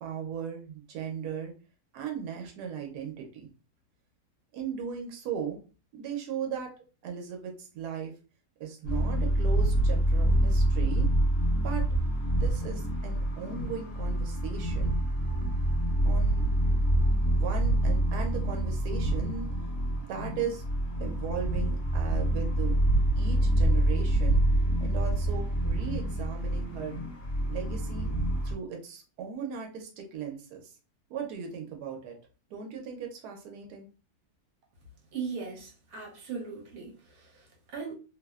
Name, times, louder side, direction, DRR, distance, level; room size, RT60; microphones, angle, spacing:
voice 1, 0.0-1.5 1.9-3.5 4.5-5.6 5.9-6.7 7.0-8.1 8.6-11.1 11.6-11.8 12.3-14.9 16.0-16.5 17.3-19.5 20.1-20.6 21.0-22.8 23.2-24.4 24.8-27.0 27.5-28.1 28.4-30.7 31.1-32.1 32.5-33.9, right 7 dB, 90° right, 1.2 m, -37 dB
sound 1, 8.9-28.5, right 1 dB, 50° left, 1.1 m, -26 dB
voice 2, 35.1-37.9, right 5 dB, 65° right, 1.2 m, -39 dB
2.9 x 2.0 x 2.2 m
omnidirectional pair, 1.7 m